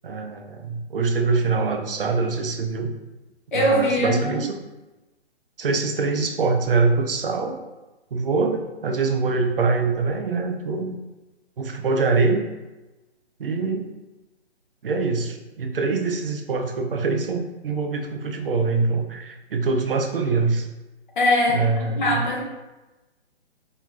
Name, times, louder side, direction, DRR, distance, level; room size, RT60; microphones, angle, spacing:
voice 1, 0.0-2.9 3.5-4.6 5.6-7.6 8.1-11.0 11.6-12.5 13.4-13.9 14.8-20.7 21.5-22.2, right 4 dB, 55° right, 4 dB, 0.4 m, -24 dB
voice 2, 3.5-4.4 21.2-21.6 22.0-22.4, left 1 dB, 50° left, -2 dB, 0.8 m, -21 dB
2.4 x 2.3 x 2.9 m, 1.1 s
figure-of-eight pair, 135°, 33 cm